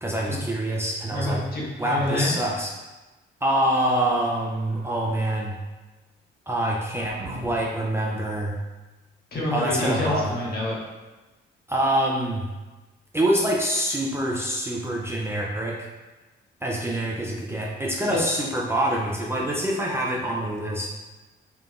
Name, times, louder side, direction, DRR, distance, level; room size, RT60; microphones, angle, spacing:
voice 1, 0.0-1.4 1.8-2.7 3.4-5.6 6.5-8.6 9.5-10.4 11.7-12.5 13.1-15.8 16.6-20.9, right 1 dB, 10° right, -3 dB, 0.4 m, -25 dB
voice 2, 1.0-2.3 9.3-10.7 18.1-18.2, left 1 dB, 50° left, -6 dB, 1.4 m, -27 dB
sound 1, 4.3-5.1 6.6-7.8, equal, 45° right, 0.9 m, -42 dB
3.9 x 3.3 x 2.4 m, 1.2 s
cardioid pair, 90°, 20 cm